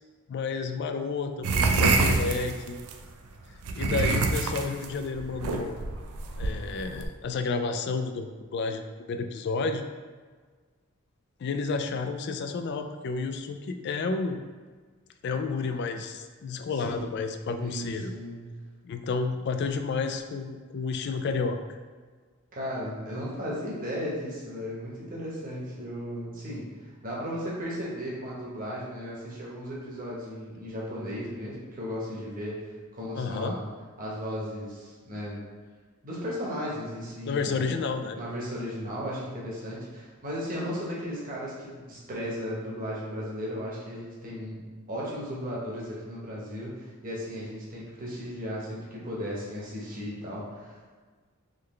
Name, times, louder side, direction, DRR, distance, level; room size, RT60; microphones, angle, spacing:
voice 1, 0.3-2.8 3.7-5.8 6.4-8.8 9.1-9.9 11.4-14.4 15.2-18.1 18.8-21.6 33.1-33.6 37.2-38.2, left 4 dB, 50° left, 7 dB, 0.3 m, -31 dB
sound 1, 1.4-3.0 3.6-7.0, right 3 dB, 90° right, 0.4 m, -26 dB
voice 2, 16.7-17.1 17.6-18.4 22.5-32.6 32.9-33.7 34.0-35.4 36.0-37.7 38.1-44.6 44.9-50.9, equal, 40° right, -5 dB, 1.1 m, -35 dB
3.9 x 3.2 x 3.2 m, 1.5 s
head